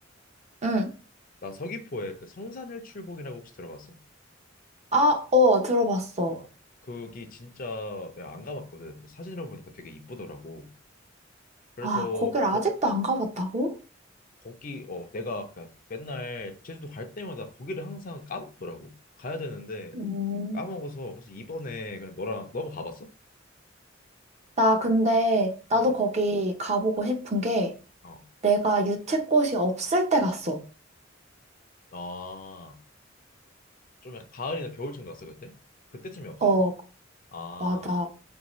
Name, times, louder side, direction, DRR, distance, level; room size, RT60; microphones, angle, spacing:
voice 1, 0.6-0.9 4.9-6.4 11.8-13.7 19.9-20.6 24.6-27.7 28.4-30.6 36.4-36.8 37.6-38.1, equal, 35° right, 3 dB, 0.7 m, -24 dB
voice 2, 1.4-4.0 6.4-6.5 6.8-10.7 11.8-12.6 14.4-18.9 19.2-20.0 20.5-23.1 25.8-25.9 28.0-28.2 31.9-32.8 34.0-35.5 35.9-36.7 37.3-38.0, left 2 dB, 45° left, 6 dB, 0.6 m, -37 dB
5.1 x 2.6 x 3.0 m, 0.36 s
head